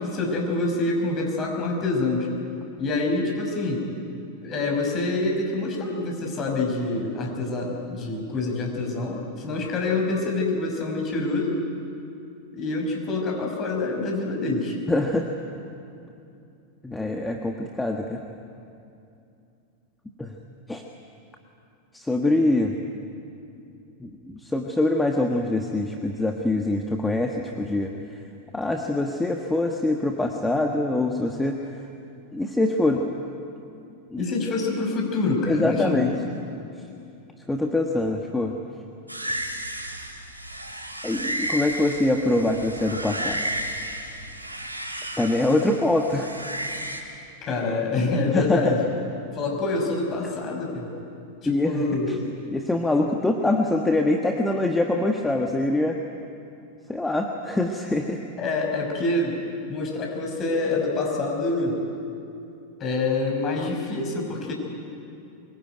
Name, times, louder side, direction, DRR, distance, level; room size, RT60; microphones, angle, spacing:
voice 1, 0.0-2.3 2.8-3.9 4.4-11.6 12.5-14.8 34.2-36.0 47.4-48.8 49.3-50.9 51.4-52.4 58.4-59.4 59.7-61.8 62.8-64.5, left 3 dB, 30° left, 1 dB, 6.0 m, -26 dB
voice 2, 14.9-15.3 16.8-18.2 20.2-20.3 20.7-20.8 21.9-22.7 24.0-27.9 28.5-31.6 32.3-33.0 34.1-34.3 35.5-36.1 37.5-38.5 39.2-39.4 41.0-43.4 45.2-46.4 48.3-48.7 51.4-52.2 52.5-56.0 56.9-58.2, left 2 dB, 5° left, 3 dB, 1.5 m, -24 dB
sound 1, 39.1-47.0, right 1 dB, 85° right, 2.5 m, -33 dB
24.0 x 21.5 x 9.3 m, 2.7 s
figure-of-eight pair, 90°, 0 cm